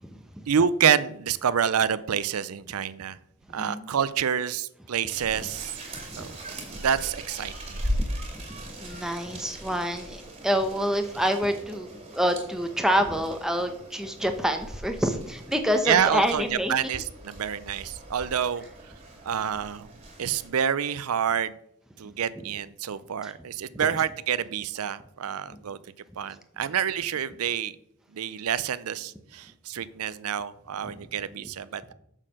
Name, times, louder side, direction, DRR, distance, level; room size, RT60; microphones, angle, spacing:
voice 1, 0.5-3.2 3.5-5.7 6.2-6.3 6.7-7.8 15.9-18.6 19.2-19.9 20.2-21.5 22.0-25.8 26.2-27.8 28.1-31.9, right 8 dB, 85° right, 16 dB, 0.5 m, -27 dB
voice 2, 3.5-3.9 5.4-5.5 6.1-6.3 8.5-11.9 12.1-16.7 23.2-23.3 25.5-25.6, equal, ahead, 5 dB, 0.9 m, -27 dB
sound 1, 5.1-20.5, equal, 25° right, 2.2 m, -39 dB
7.4 x 6.5 x 6.4 m, 0.73 s
head